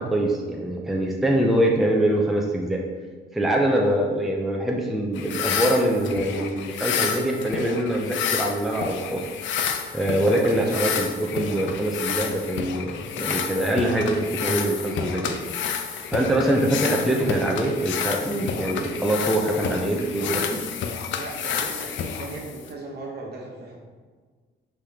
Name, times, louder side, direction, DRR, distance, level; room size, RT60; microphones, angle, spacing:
voice 1, 0.0-2.8 3.3-9.3 9.9-15.4 16.1-20.4, right 1 dB, ahead, 0 dB, 0.5 m, -24 dB
sound 1, 5.1-22.7, left 7 dB, 70° left, 0.4 m, -30 dB
voice 2, 19.6-20.8 21.1-23.8, right 2 dB, 55° right, -2 dB, 1.1 m, -37 dB
4.3 x 3.3 x 3.5 m, 1.5 s
cardioid pair, 90°, 20 cm